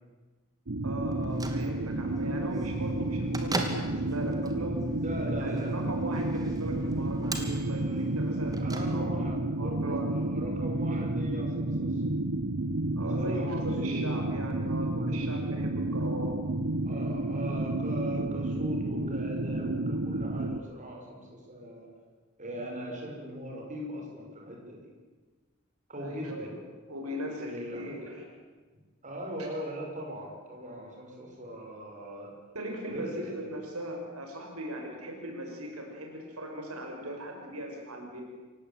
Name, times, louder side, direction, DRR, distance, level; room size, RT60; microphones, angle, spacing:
sound 1, 0.7-20.6, right 2 dB, 60° right, 1.1 m, -31 dB
voice 1, 0.8-4.9 5.4-9.2 9.6-10.1 13.0-16.4 26.0-26.6 26.9-28.2 32.5-38.2, equal, 90° right, 2 dB, 5.7 m, -39 dB
Bell / Microwave oven, 1.1-9.4, right 2 dB, 20° right, 2.6 m, -41 dB
voice 2, 4.9-5.8 8.6-12.0 13.1-14.4 16.8-21.9 22.4-24.9 25.9-26.5 27.4-28.1 29.0-32.3 32.9-33.1 33.4-33.5, equal, 35° right, 0 dB, 6.0 m, -40 dB
28.0 x 17.0 x 8.9 m, 1.3 s
head